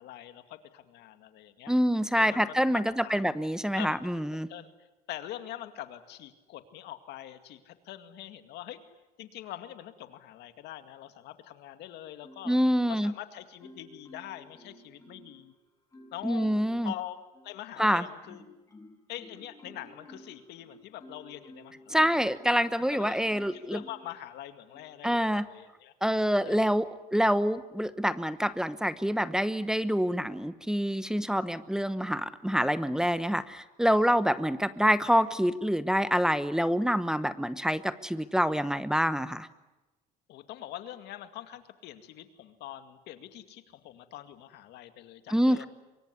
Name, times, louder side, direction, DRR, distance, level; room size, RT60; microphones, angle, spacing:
voice 1, 0.0-1.7 2.1-3.2 3.6-4.7 5.1-8.8 9.2-12.6 12.9-15.5 16.1-16.5 16.8-17.2 17.4-18.4 19.1-22.4 22.9-25.9 26.5-26.8 40.3-45.7, left 12 dB, 80° left, 9 dB, 2.2 m, -44 dB
voice 2, 1.7-4.5 12.4-13.1 16.2-16.9 17.8-18.0 21.9-23.8 25.0-25.5 26.0-39.5 45.3-45.6, equal, 5° right, 13 dB, 1.0 m, -26 dB
Marimba xylophone, 12.2-13.2 13.6-15.4 15.9-16.8 17.3-22.8 23.3-24.2 24.7-25.0, left 1 dB, 20° left, 7.1 m, -53 dB
24.5 x 23.5 x 9.8 m, 1.0 s
cardioid pair, 110°, 17 cm